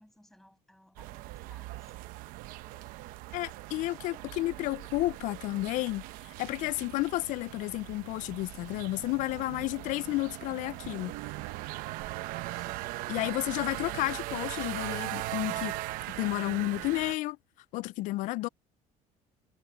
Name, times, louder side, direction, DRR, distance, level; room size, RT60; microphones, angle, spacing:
voice 1, 0.0-1.9 3.7-4.0 12.3-12.9, left 1 dB, ahead, 7.6 m, -61 dB
sound 1, 1.0-17.2, right 18 dB, 85° right, 0.9 m, -39 dB
voice 2, 3.3-6.0 6.4-11.2 13.1-15.8 16.2-17.4 17.7-18.5, left 19 dB, 65° left, 0.4 m, -31 dB
cardioid pair, 155°, 14 cm